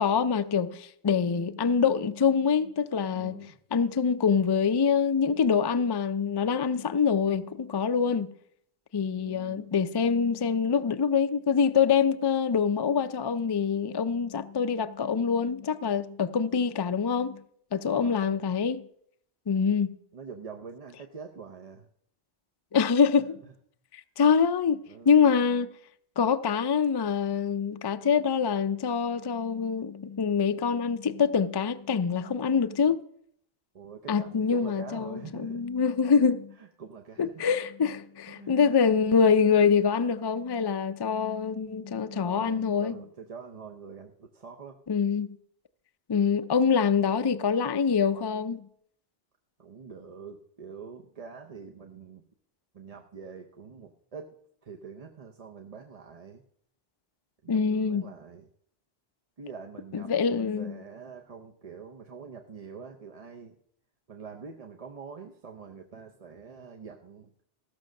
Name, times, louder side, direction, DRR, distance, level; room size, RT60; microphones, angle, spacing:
voice 1, 0.0-8.3 8.9-17.4 17.7-18.9 19.5-20.0 22.7-23.4 23.9-24.8 25.1-25.7 26.2-33.0 34.1-36.5 37.2-42.9 44.9-45.4 46.1-48.6 57.5-58.1 59.9-60.7, left 6 dB, 45° left, 0.3 m, -25 dB
voice 2, 3.1-3.6 9.2-9.7 17.8-18.5 20.1-21.9 24.9-25.2 33.7-35.6 36.6-37.4 38.3-38.6 42.1-44.8 47.0-47.1 49.6-52.2 52.7-54.4 54.6-56.4 57.4-58.5 59.4-63.6 64.1-67.3, right 5 dB, 40° right, 0.8 m, -45 dB
15.0 x 6.2 x 6.4 m
omnidirectional pair, 1.1 m